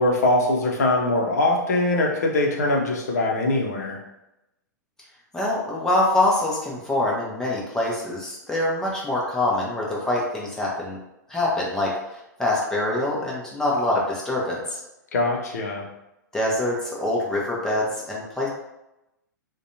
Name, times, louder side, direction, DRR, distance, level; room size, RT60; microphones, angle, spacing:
voice 1, 0.0-4.0 15.1-15.9, left 2 dB, 55° left, 0 dB, 0.6 m, -22 dB
voice 2, 5.3-11.0 11.3-11.9 12.4-14.8 16.3-18.5, left 1 dB, 5° left, -4 dB, 0.6 m, -24 dB
2.6 x 2.2 x 2.7 m, 0.91 s
figure-of-eight pair, 105°, 10 cm